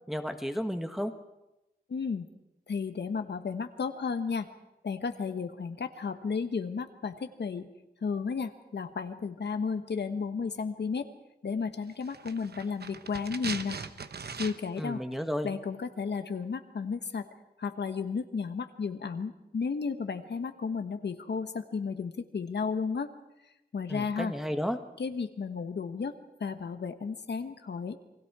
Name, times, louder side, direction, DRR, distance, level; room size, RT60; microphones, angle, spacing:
voice 1, 0.1-1.1 14.8-15.5 23.9-24.8, equal, ahead, 6 dB, 1.4 m, -32 dB
voice 2, 1.9-2.3 2.7-4.5 4.8-7.7 8.0-11.1 11.4-13.8 14.3-15.0 15.4-17.3 17.6-23.1 23.7-24.3 25.0-28.0, left 5 dB, 75° left, 8 dB, 1.2 m, -33 dB
sound 1, 12.0-14.9 15.1-15.2, right 5 dB, 70° right, 1.0 m, -40 dB
29.0 x 20.5 x 4.8 m, 0.95 s
wide cardioid pair, 110°, 18 cm